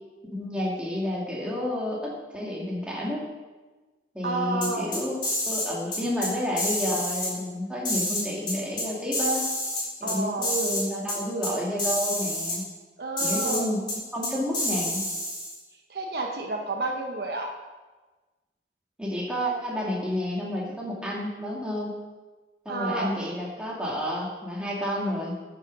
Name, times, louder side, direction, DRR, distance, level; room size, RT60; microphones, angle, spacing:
voice 1, 0.3-3.3 4.1-5.2 5.5-9.5 10.0-12.6 13.2-15.0 19.0-21.9 22.7-25.3, equal, 5° right, -4 dB, 2.1 m, -30 dB
voice 2, 4.2-4.9 10.0-10.5 13.0-13.6 15.9-17.5 22.7-23.1, right 2 dB, 65° right, 2 dB, 1.2 m, -30 dB
sound 1, 4.6-5.7 5.9-6.3 6.6-7.3 7.8-8.8 9.1-10.1 10.4-10.8 11.1-11.2 11.4-11.5 11.8-12.6 13.2-13.6 13.9-14.0 14.2-15.5, left 1 dB, 25° left, 3.4 m, -28 dB
9.5 x 6.7 x 6.2 m, 1.3 s
head